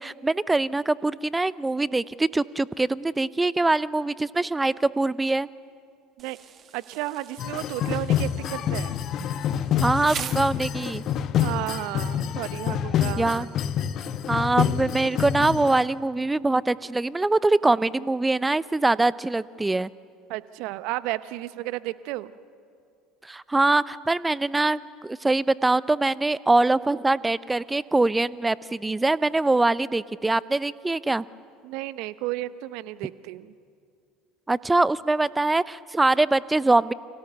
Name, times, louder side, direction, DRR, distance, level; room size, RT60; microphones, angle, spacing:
voice 1, 0.0-5.5 9.8-11.0 13.2-13.5 14.3-19.9 23.2-31.2 34.5-36.9, right 2 dB, 15° right, 19 dB, 0.7 m, -23 dB
Insect, 6.2-11.2, right 8 dB, 40° right, 1.6 m, -42 dB
voice 2, 6.7-9.0 11.4-13.5 20.3-22.3 31.6-33.5, right 17 dB, 60° right, 16 dB, 0.9 m, -33 dB
sound 1, 7.4-15.8, left 9 dB, 50° left, 1.2 m, -27 dB
29.5 x 25.0 x 6.9 m, 2.3 s
figure-of-eight pair, 65°, 0 cm